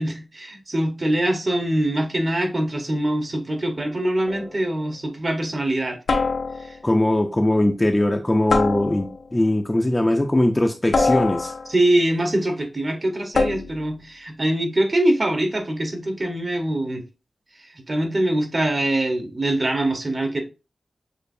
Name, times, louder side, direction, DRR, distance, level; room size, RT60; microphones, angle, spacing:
voice 1, 0.0-6.0 6.6-6.8 11.7-17.0 17.9-20.4, right 1 dB, 40° right, 1.0 m, -23 dB
sound 1, 4.3-4.6 6.1-6.9 8.5-9.3 10.9-11.9 13.3-13.9, left 3 dB, 85° left, 0.6 m, -24 dB
voice 2, 6.8-11.5, left 1 dB, 20° left, 0.5 m, -20 dB
6.7 x 2.5 x 2.6 m
wide cardioid pair, 105°, 0 cm